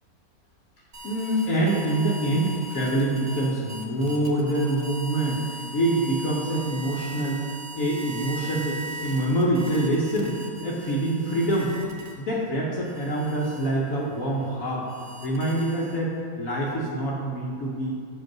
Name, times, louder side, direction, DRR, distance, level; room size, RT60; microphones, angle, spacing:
sound 1, 0.9-12.4 12.8-16.2, right 1 dB, 30° right, 0.8 m, -40 dB
voice 1, 1.0-7.4 7.7-10.4 10.6-11.7 12.2-14.9 15.2-17.9, right 1 dB, 65° left, -5 dB, 1.4 m, -25 dB
7.1 x 5.2 x 5.9 m, 2.3 s
omnidirectional pair, 1.6 m